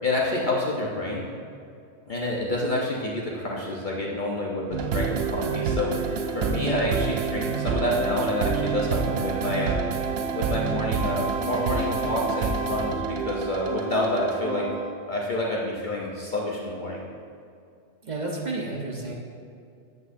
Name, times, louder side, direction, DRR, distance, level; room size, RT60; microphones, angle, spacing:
voice 1, 0.0-1.3 2.1-9.8 10.3-14.6 15.1-17.0, left 1 dB, 45° left, -4 dB, 1.0 m, -28 dB
sound 1, 4.7-15.1, right 5 dB, 60° right, 0.7 m, -28 dB
voice 2, 18.0-19.1, right 2 dB, 35° right, -2 dB, 1.1 m, -31 dB
10.5 x 8.0 x 2.7 m, 2.5 s
omnidirectional pair, 1.3 m